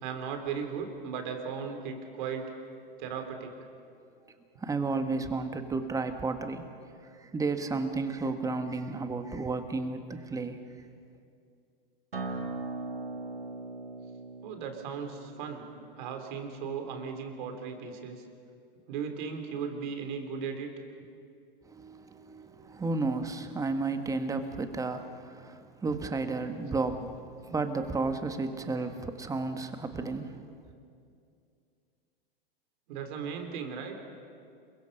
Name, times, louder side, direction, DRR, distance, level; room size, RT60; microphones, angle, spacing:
voice 1, 0.0-2.5 3.0-3.5 14.4-15.7 16.0-18.2 18.9-20.7 32.9-34.0, right 6 dB, 55° right, 6 dB, 3.3 m, -36 dB
voice 2, 4.6-6.7 7.2-10.6 21.7-27.1 27.5-30.3, right 3 dB, 10° right, 8 dB, 1.5 m, -32 dB
Acoustic guitar, 12.1-17.3, right 3 dB, 85° right, 2.2 m, -40 dB
28.5 x 22.5 x 5.5 m, 2.4 s
hypercardioid pair, 105°, 29 cm